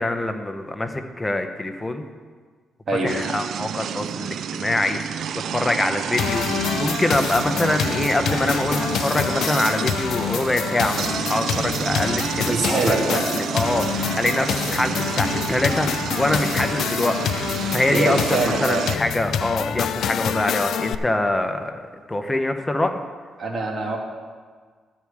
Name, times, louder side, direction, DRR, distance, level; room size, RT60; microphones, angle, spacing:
voice 1, 0.0-2.1 3.0-17.2 17.4-21.8 22.1-22.9, left 2 dB, 15° left, 7 dB, 0.8 m, -24 dB
sound 1, 3.1-19.0, right 8 dB, 70° right, 0.3 m, -30 dB
sound 2, 6.2-20.9, left 8 dB, 75° left, 0.4 m, -27 dB
voice 2, 12.5-13.2 17.9-18.9 23.4-24.0, right 3 dB, 40° right, -1 dB, 2.0 m, -24 dB
12.5 x 4.7 x 8.6 m, 1.5 s
cardioid pair, 115°, 0 cm